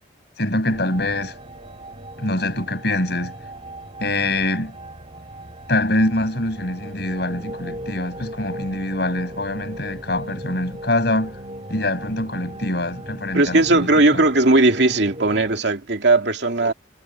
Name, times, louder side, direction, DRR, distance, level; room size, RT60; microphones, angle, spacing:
voice 1, 0.4-1.4 2.2-3.4 4.0-4.8 5.7-11.4 11.7-14.2, left 1 dB, 55° left, 5.7 m, -24 dB
sound 1, 0.7-15.6, right 1 dB, 30° right, 2.2 m, -38 dB
voice 2, 13.3-16.7, right 2 dB, 65° right, 2.5 m, -17 dB
head